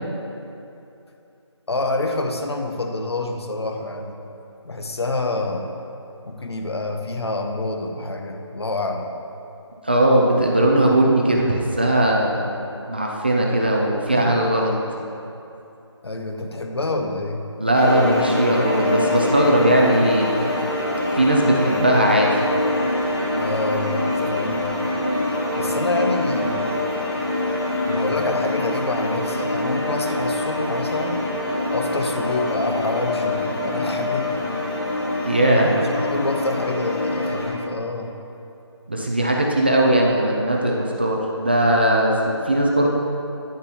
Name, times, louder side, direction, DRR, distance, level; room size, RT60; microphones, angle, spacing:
voice 1, 1.7-4.2 4.6-5.7 6.2-9.1 14.1-14.4 16.0-17.4 23.4-24.7 25.5-26.8 27.9-31.2 31.7-34.5 35.6-38.1, left 2 dB, 60° left, 4 dB, 1.0 m, -27 dB
voice 2, 9.8-12.5 12.9-14.7 17.6-20.3 21.1-22.4 35.3-35.7 38.9-42.9, right 1 dB, 20° right, -1 dB, 0.5 m, -19 dB
sound 1, 17.7-37.5, left 2 dB, 35° left, 2.1 m, -24 dB
10.0 x 10.0 x 2.9 m, 2.7 s
figure-of-eight pair, 165°, 15 cm